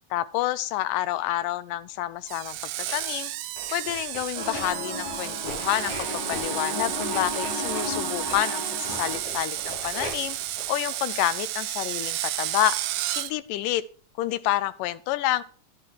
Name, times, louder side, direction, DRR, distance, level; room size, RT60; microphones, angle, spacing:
voice 1, 0.1-3.3 3.7-10.4 10.7-12.8 13.1-13.8 14.2-15.4, left 14 dB, 85° left, 16 dB, 2.2 m, -28 dB
sound 1, 2.3-3.1 3.6-11.6 12.1-12.2, left 1 dB, 60° left, 5.5 m, -41 dB
Screech, 2.3-13.3, right 14 dB, 85° right, 1.6 m, -32 dB
sound 2, 4.3-9.2, left 1 dB, 10° left, 4.7 m, -34 dB
11.5 x 8.5 x 3.0 m, 0.42 s
omnidirectional pair, 3.8 m